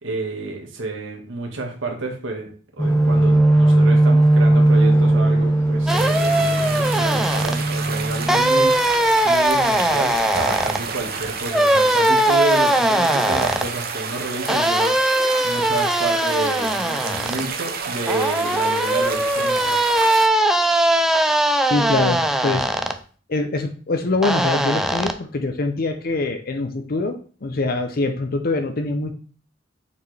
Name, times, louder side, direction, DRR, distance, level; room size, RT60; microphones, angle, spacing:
voice 1, 0.0-2.5 2.8-8.7 9.2-15.0 15.4-19.8, right 3 dB, 90° right, 1 dB, 1.5 m, -29 dB
sound 1, 2.8-9.3 9.6-9.9 10.3-10.8 11.2-11.3, right 1 dB, 15° left, 0.9 m, -18 dB
sound 2, 5.9-7.6 8.3-10.8 11.5-13.7 14.5-17.4 18.1-23.0 24.2-25.1, right 1 dB, 5° right, 0.4 m, -20 dB
sound 3, 5.9-20.3, right 5 dB, 50° right, 0.7 m, -30 dB
voice 2, 21.7-22.7 23.3-27.1 27.4-29.1, left 2 dB, 50° left, 6 dB, 0.6 m, -24 dB
7.0 x 4.4 x 3.3 m, 0.41 s
head